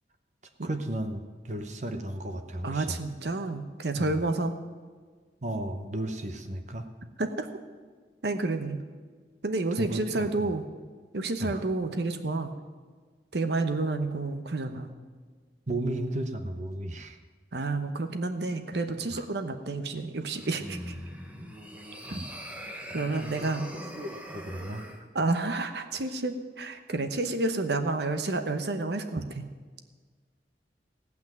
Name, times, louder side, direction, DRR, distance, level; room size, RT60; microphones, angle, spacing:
voice 1, 0.6-3.0 4.0-4.1 5.4-6.9 9.8-10.5 11.4-11.6 15.7-17.2 19.1-19.3 22.1-22.3 24.0-24.9, right 1 dB, 40° right, 7 dB, 0.8 m, -34 dB
voice 2, 2.6-4.5 7.2-7.5 8.2-8.8 9.4-10.6 11.1-12.5 13.3-14.9 17.5-20.9 22.9-23.7 25.1-29.2, right 2 dB, 65° right, 8 dB, 0.9 m, -30 dB
sound 1, 20.2-25.0, equal, 5° right, 1.2 m, -41 dB
17.0 x 6.0 x 9.0 m, 1.5 s
head